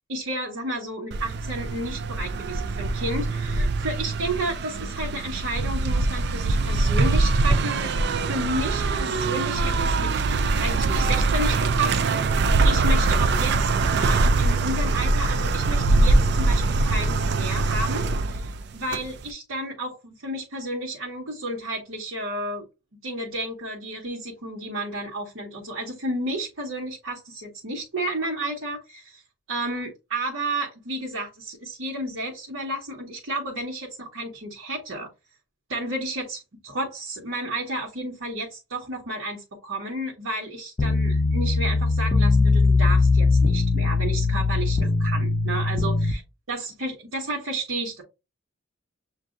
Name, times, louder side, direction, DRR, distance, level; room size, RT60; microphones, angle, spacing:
voice 1, 0.1-7.9 8.3-10.2 10.6-22.6 23.0-29.2 29.5-35.1 35.7-46.2 46.5-48.0, right 1 dB, 85° right, 1.3 m, -32 dB
sound 1, 1.1-19.3, right 3 dB, 55° right, 0.4 m, -23 dB
sound 2, 40.8-46.1, left 3 dB, 30° left, 0.3 m, -20 dB
7.4 x 2.6 x 2.5 m
head